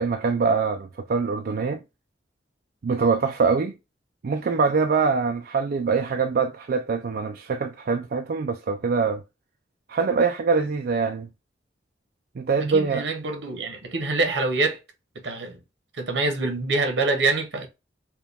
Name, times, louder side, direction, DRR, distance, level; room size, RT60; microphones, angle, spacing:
voice 1, 0.0-1.8 2.8-3.8 4.2-9.2 9.9-11.3 12.4-13.1, right 5 dB, 55° right, 0.4 m, -24 dB
voice 2, 12.7-14.8 15.2-15.6 16.0-17.7, right 3 dB, 80° right, 1.1 m, -25 dB
4.7 x 2.3 x 3.3 m
head